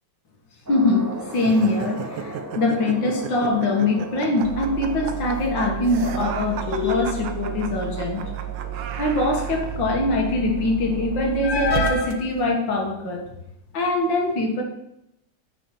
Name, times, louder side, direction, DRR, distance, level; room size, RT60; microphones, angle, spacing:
voice 1, 0.7-8.2 9.0-13.2 13.7-14.6, left 2 dB, 90° left, 1 dB, 2.2 m, -23 dB
sound 1, 0.7-12.2, right 2 dB, 15° right, 0.6 m, -38 dB
sound 2, 1.3-9.8, right 8 dB, 90° right, 1.4 m, -35 dB
sound 3, 4.4-12.5, right 11 dB, 70° right, 1.0 m, -32 dB
9.0 x 5.1 x 4.5 m, 0.80 s
omnidirectional pair, 2.0 m